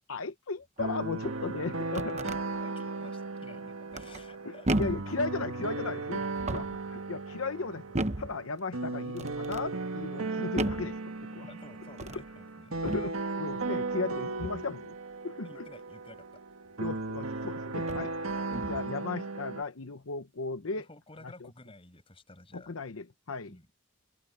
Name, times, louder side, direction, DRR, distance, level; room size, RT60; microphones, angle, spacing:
voice 1, 0.0-2.2 4.4-6.3 6.5-11.5 12.1-12.2 12.8-15.0 15.2-15.7 16.8-18.1 18.7-20.8 21.2-21.5 22.5-23.5, left 3 dB, 85° left, 0.9 m, -36 dB
sound 1, 0.8-19.6, right 3 dB, 85° right, 1.7 m, -36 dB
Barn door open and close, 1.6-2.4 3.9-4.3 4.6-5.1 6.3-6.9 7.9-8.4 9.2-9.7 10.6-10.9 11.9-12.3 12.8-13.2 14.4-14.7 16.8-16.9 17.8-18.1 18.5-18.9, right 1 dB, 35° right, 1.0 m, -34 dB
voice 2, 2.6-4.9 11.5-12.8 15.4-16.4 19.8-20.0 20.6-22.7 23.5-23.7, left 2 dB, 25° left, 6.2 m, -52 dB
head